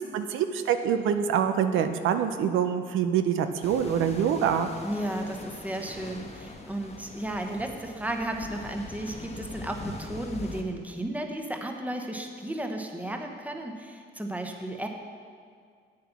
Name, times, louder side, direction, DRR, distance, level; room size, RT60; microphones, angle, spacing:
voice 1, 0.1-4.7, right 8 dB, 85° right, 8 dB, 0.6 m, -25 dB
sound 1, 3.6-10.6, left 3 dB, 35° left, 1.2 m, -42 dB
voice 2, 4.8-14.9, right 1 dB, 5° right, 3 dB, 1.1 m, -34 dB
8.5 x 7.7 x 5.9 m, 2.1 s
cardioid pair, 90°, 20 cm